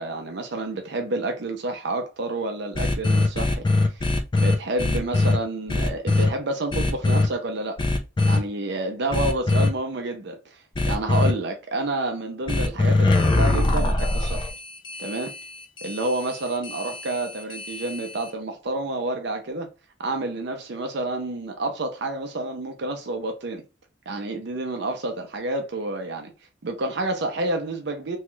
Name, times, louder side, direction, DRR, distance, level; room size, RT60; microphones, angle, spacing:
voice 1, 0.0-4.1 4.4-7.8 8.2-10.6 10.9-14.5 15.0-15.3 15.8-19.7 20.0-23.6 24.1-26.3 26.6-28.2, right 2 dB, 55° right, 0.5 m, -29 dB
sound 1, 2.7-5.4 5.7-6.3 6.7-7.3 7.8-8.4 9.1-9.7 10.7-11.3 12.5-18.3, left 2 dB, 25° left, 0.3 m, -22 dB
3.0 x 2.3 x 3.0 m
head